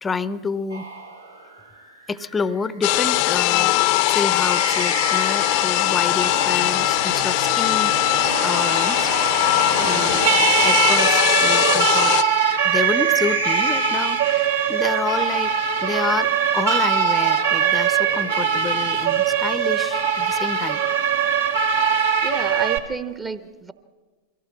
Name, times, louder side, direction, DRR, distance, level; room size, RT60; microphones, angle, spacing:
voice 1, 0.0-0.9 2.1-8.0 8.4-9.1 9.8-15.5 15.8-20.8, left 4 dB, 15° left, 17 dB, 0.8 m, -29 dB
sound 1, 0.7-6.2 7.6-10.6 11.9-15.4 16.7-19.6, right 2 dB, 90° right, 2.6 m, -34 dB
sound 2, 2.8-12.2, left 17 dB, 45° left, 0.8 m, -20 dB
Siren, 5.1-22.8, right 7 dB, 65° right, 1.7 m, -22 dB
voice 2, 9.8-10.2 22.2-23.7, right 4 dB, 15° right, 12 dB, 1.1 m, -31 dB
23.0 x 16.5 x 7.5 m, 1.3 s
figure-of-eight pair, 90°, 0 cm